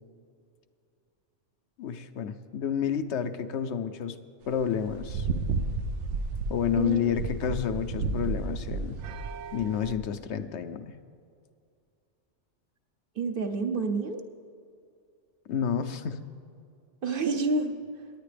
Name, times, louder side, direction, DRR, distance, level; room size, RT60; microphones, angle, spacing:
voice 1, 1.8-4.2 4.5-5.3 6.5-9.0 9.5-11.0 15.5-16.2, left 8 dB, 75° left, 10 dB, 0.9 m, -30 dB
sound 1, 4.5-10.0, right 3 dB, 90° right, 1.0 m, -32 dB
voice 2, 6.8-7.1 13.2-14.2 17.0-17.7, right 3 dB, 55° right, 6 dB, 0.9 m, -28 dB
18.5 x 9.7 x 3.4 m, 2.4 s
omnidirectional pair, 1.2 m